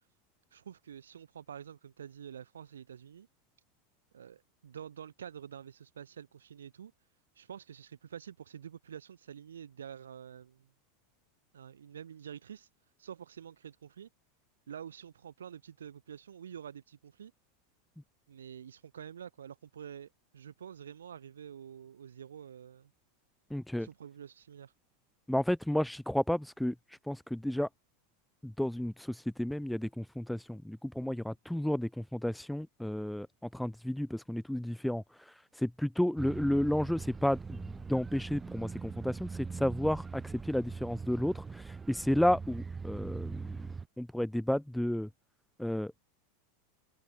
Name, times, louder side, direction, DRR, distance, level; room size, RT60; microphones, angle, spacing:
voice 1, 0.5-3.3 4.1-6.9 7.4-10.7 11.5-12.7 13.0-14.1 14.7-17.3 18.3-22.9 23.8-24.7, right 8 dB, 75° right, 3.8 m, -48 dB
voice 2, 23.5-23.9 25.3-26.7 27.1-27.7 28.4-33.3 33.5-37.6 37.9-43.7 44.0-45.1 45.6-45.9, left 1 dB, ahead, 0.3 m, -32 dB
sound 1, 36.2-43.9, right 5 dB, 15° right, 2.6 m, -42 dB
figure-of-eight pair, 90°, 0 cm